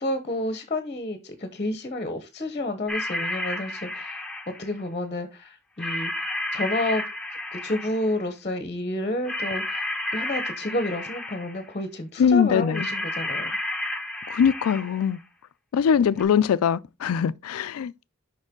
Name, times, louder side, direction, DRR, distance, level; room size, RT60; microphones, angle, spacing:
voice 1, 0.0-4.3 4.6-7.0 7.5-13.5, left 1 dB, 30° left, 0.9 m, -30 dB
sound 1, 2.9-4.8 5.8-8.2 9.2-11.7 12.7-15.1 16.2-16.3, left 1 dB, 5° left, 0.9 m, -31 dB
voice 2, 12.2-12.9 14.3-15.2 15.7-18.1, left 7 dB, 85° left, 0.4 m, -22 dB
6.4 x 5.3 x 3.6 m
head